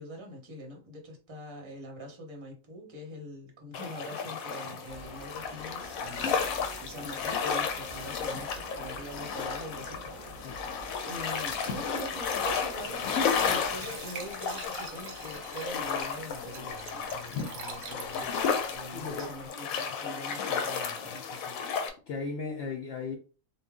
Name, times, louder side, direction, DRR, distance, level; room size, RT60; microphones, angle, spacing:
voice 1, 0.0-10.5 11.0-18.3 18.7-21.6, equal, 25° right, 0.8 m, -44 dB
sound 1, 3.7-21.9, left 6 dB, 90° left, 1.1 m, -33 dB
sound 2, 4.9-13.8, right 1 dB, 10° left, 1.5 m, -47 dB
voice 2, 10.4-10.8 18.2-18.3 18.9-19.3 22.1-23.2, left 4 dB, 60° left, 0.7 m, -36 dB
Glass / Trickle dribble / Fill (with liquid), 12.1-19.5, right 5 dB, 85° right, 1.1 m, -47 dB
3.2 x 2.3 x 3.5 m
omnidirectional pair, 1.4 m